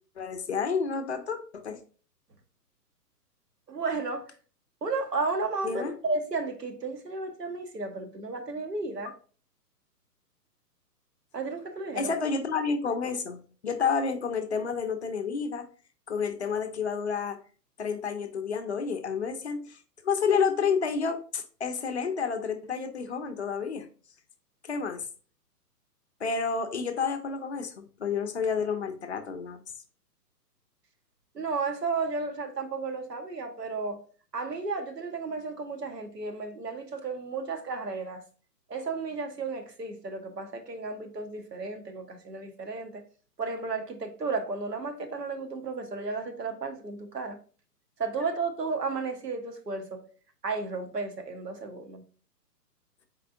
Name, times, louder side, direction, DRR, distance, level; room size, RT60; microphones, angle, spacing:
voice 1, 0.2-1.8 5.6-5.9 12.0-15.7 16.1-17.4 17.8-19.8 20.0-23.9 24.6-25.0 26.2-29.6, left 5 dB, 45° left, 0.5 m, -30 dB
voice 2, 3.7-4.3 4.8-9.1 11.3-12.1 31.3-34.0 34.3-38.2 38.7-43.0 43.4-47.4 48.0-50.0 50.4-52.0, right 4 dB, 75° right, 1.1 m, -33 dB
4.3 x 4.0 x 2.5 m
figure-of-eight pair, 125°, 48 cm